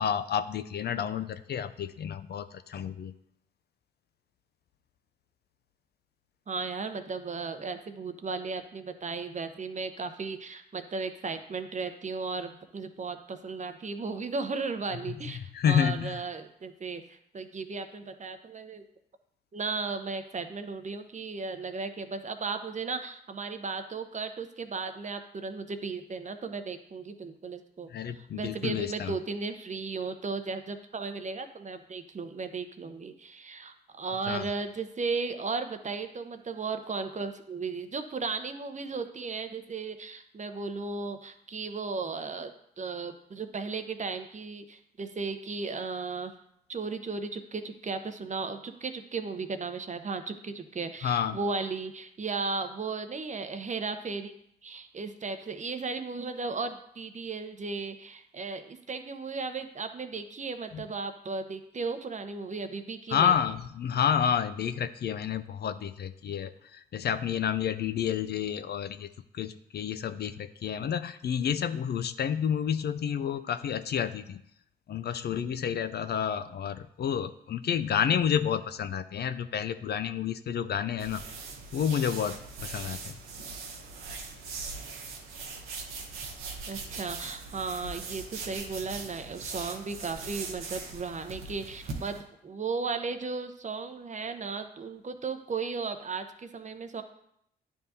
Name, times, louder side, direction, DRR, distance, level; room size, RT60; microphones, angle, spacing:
voice 1, 0.0-3.1 15.5-16.2 27.9-29.1 34.3-34.4 51.0-51.4 60.7-60.8 63.1-69.1 69.3-74.4 74.9-81.2 81.7-83.1, left 8 dB, 50° left, 10 dB, 0.4 m, -30 dB
voice 2, 6.5-18.9 19.5-42.5 42.8-46.3 46.7-54.4 54.6-63.4 86.7-97.0, right 4 dB, 35° right, 8 dB, 0.7 m, -35 dB
sound 1, 81.0-92.2, right 4 dB, 80° right, 1.0 m, -40 dB
10.0 x 3.5 x 2.7 m, 0.73 s
hypercardioid pair, 45°, 21 cm